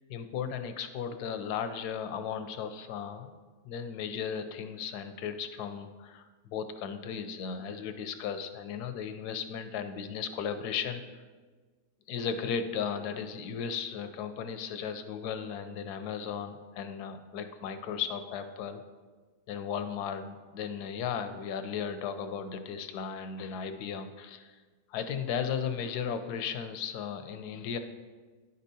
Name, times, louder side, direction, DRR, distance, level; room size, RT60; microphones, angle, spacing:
voice 1, 0.1-3.3 3.6-6.2 6.5-11.2 12.1-18.8 19.5-24.6 24.9-27.8, left 7 dB, 85° left, 9 dB, 1.1 m, -36 dB
10.5 x 5.4 x 2.7 m, 1.4 s
omnidirectional pair, 1.7 m